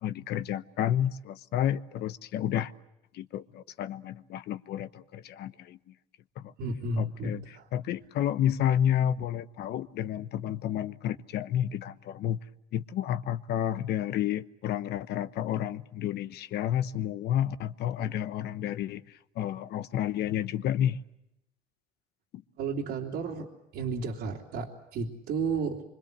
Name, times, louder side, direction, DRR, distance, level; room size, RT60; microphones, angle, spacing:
voice 1, 0.0-2.7 3.1-5.8 6.4-6.5 7.0-7.4 7.7-12.4 12.7-21.0, left 10 dB, 75° left, 1.0 m, -30 dB
voice 2, 6.6-7.7 22.6-23.5 23.7-25.8, right 4 dB, 80° right, 3.3 m, -32 dB
26.0 x 25.0 x 8.0 m
cardioid pair, 110°, 17 cm